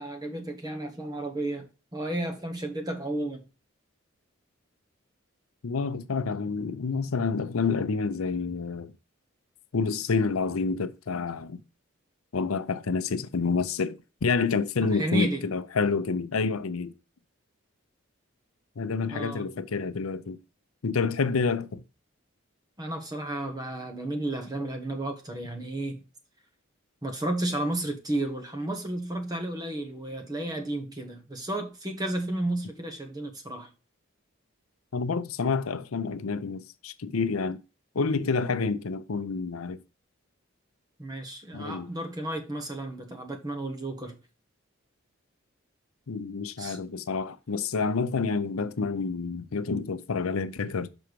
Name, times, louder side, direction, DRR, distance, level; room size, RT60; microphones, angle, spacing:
voice 1, 0.0-1.7 1.9-3.4 14.9-15.5 19.1-19.5 22.8-26.0 27.0-33.7 41.0-44.2 46.6-46.8, right 1 dB, 20° right, 1.3 m, -32 dB
voice 2, 5.6-8.9 9.7-11.6 12.3-16.9 18.8-20.4 20.8-21.8 34.9-37.6 37.9-39.8 41.5-41.9 46.1-50.9, left 4 dB, 90° left, 0.6 m, -28 dB
6.2 x 4.5 x 5.1 m
head